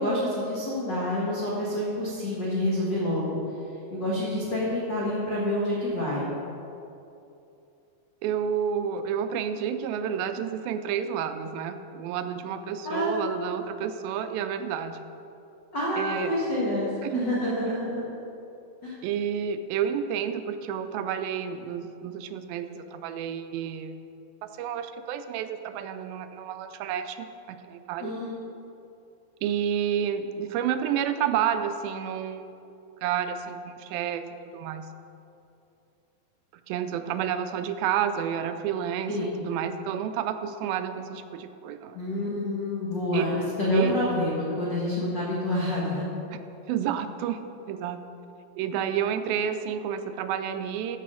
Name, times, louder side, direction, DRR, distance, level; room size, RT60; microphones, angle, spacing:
voice 1, 0.0-3.4 3.9-6.3 12.8-13.2 15.7-18.0 18.8-18.9 28.0-28.3 39.1-39.3 41.9-46.1, left 1 dB, 45° left, -7 dB, 1.5 m, -28 dB
voice 2, 8.2-15.0 16.0-16.4 17.0-17.8 19.0-23.9 24.4-28.1 29.4-32.5 33.0-34.2 34.5-34.9 36.7-39.1 39.4-42.0 43.1-43.3 43.7-44.0 46.3-46.4 46.7-47.4 47.7-48.0 48.6-51.0, right 8 dB, 85° right, 9 dB, 2.3 m, -30 dB
13.0 x 4.6 x 6.3 m, 2.7 s
omnidirectional pair, 4.2 m